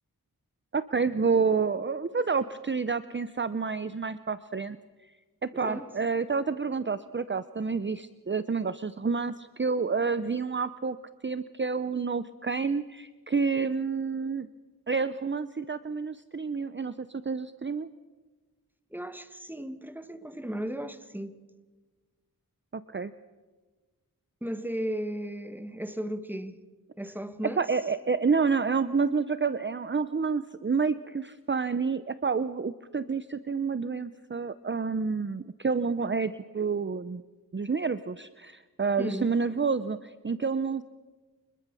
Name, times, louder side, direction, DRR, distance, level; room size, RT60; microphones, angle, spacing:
voice 1, 0.7-4.8 5.4-11.0 11.2-14.5 14.9-17.9 22.7-23.1 27.6-37.2 37.5-40.8, right 5 dB, 30° right, 0.7 m, -29 dB
voice 2, 5.5-5.9 18.9-21.4 24.4-26.6 27.0-27.6 39.0-39.3, equal, 5° right, 1.5 m, -35 dB
25.0 x 21.5 x 6.9 m
wide cardioid pair, 80°, 36 cm